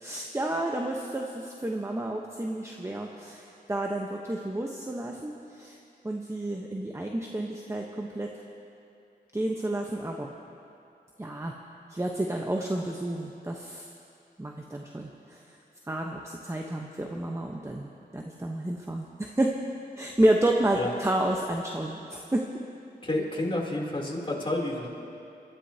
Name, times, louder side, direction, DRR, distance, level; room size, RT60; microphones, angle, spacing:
voice 1, 0.0-5.8 6.0-8.3 9.3-10.3 11.2-11.5 11.9-13.9 14.4-15.4 15.9-19.5 19.9-22.5, right 1 dB, 15° right, 1 dB, 1.0 m, -30 dB
voice 2, 23.0-24.9, left 1 dB, 30° left, -2 dB, 3.3 m, -30 dB
25.0 x 13.5 x 2.9 m, 2.7 s
cardioid pair, 50°, 17 cm